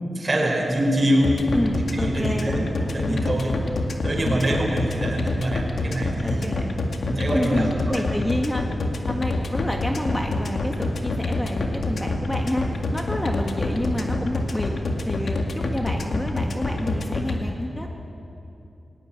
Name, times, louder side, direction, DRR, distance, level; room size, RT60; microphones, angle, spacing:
voice 1, 0.0-1.4 1.7-3.6 4.0-6.5 7.0-8.1, right 1 dB, 35° right, 0 dB, 4.7 m, -25 dB
sound 1, 1.2-17.4, left 2 dB, 65° left, 2.1 m, -26 dB
voice 2, 1.5-2.7 3.1-3.3 4.3-4.4 6.2-6.7 7.2-8.7 9.1-14.7 15.0-17.9, left 1 dB, 15° left, 1 dB, 2.0 m, -29 dB
18.5 x 18.5 x 9.1 m, 2.8 s
wide cardioid pair, 75°, 0 cm